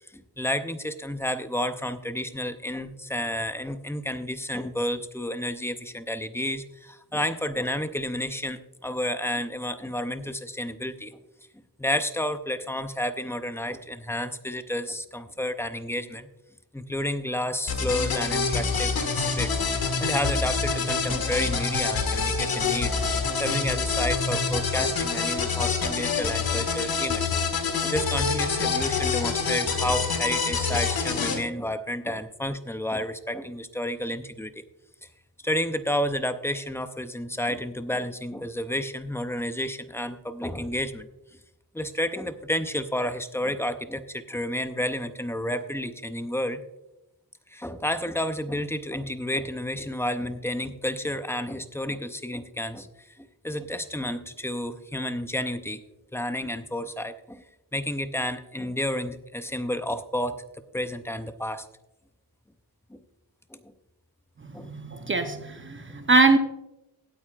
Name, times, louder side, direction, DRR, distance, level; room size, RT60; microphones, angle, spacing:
voice 1, 0.1-11.2 11.8-16.3 16.7-19.6 20.0-27.4 27.8-34.5 35.4-41.1 41.7-46.6 47.5-55.8 56.1-57.4 57.7-60.4 60.7-61.7 62.9-63.0 63.5-63.7 64.5-64.7, left 1 dB, 5° left, 10 dB, 0.5 m, -31 dB
sound 1, 17.7-31.4, left 5 dB, 70° left, 1.7 m, -26 dB
voice 2, 64.4-66.4, right 3 dB, 30° right, 7 dB, 0.7 m, -22 dB
17.5 x 9.0 x 2.4 m, 0.95 s
wide cardioid pair, 155°, 38 cm